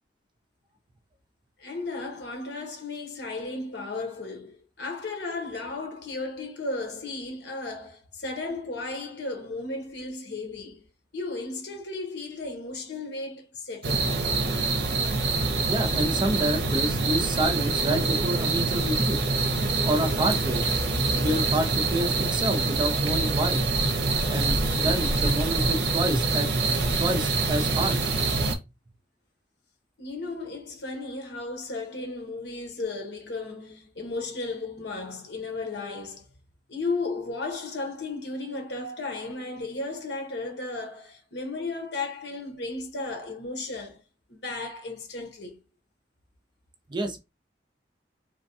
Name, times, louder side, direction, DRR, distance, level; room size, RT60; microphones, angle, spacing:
voice 1, 1.6-10.9 11.1-14.1 30.0-36.3 36.7-44.0 44.4-45.6, left 3 dB, 75° left, 1.0 m, -34 dB
sound 1, 13.8-28.5, right 3 dB, 70° right, 0.7 m, -25 dB
voice 2, 15.7-19.2 19.8-20.6 21.1-23.6 24.3-26.5 27.0-28.0 46.9-47.2, right 1 dB, 25° right, 0.5 m, -28 dB
3.2 x 2.2 x 2.6 m
head